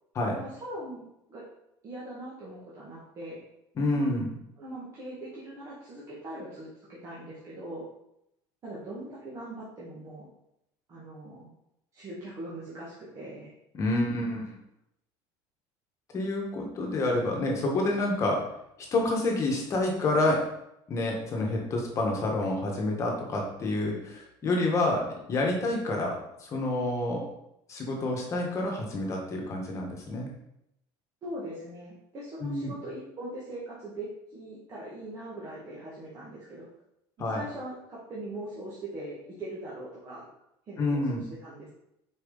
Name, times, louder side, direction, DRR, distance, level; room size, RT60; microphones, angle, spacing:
voice 1, 0.3-1.0 1.3-1.4 1.8-3.4 3.9-4.1 4.6-7.8 8.6-10.3 10.9-11.5 11.9-13.5 31.2-36.7 37.3-40.3 40.7-41.7, right 1 dB, 30° right, -8 dB, 1.8 m, -41 dB
voice 2, 3.8-4.3 13.7-14.6 16.1-18.4 18.9-20.4 20.9-26.1 26.4-27.2 27.7-30.3 32.4-32.7 37.2-37.4 40.8-41.2, left 2 dB, 30° left, 0 dB, 1.5 m, -28 dB
6.7 x 4.8 x 4.0 m, 0.81 s
cardioid pair, 150°, 10 cm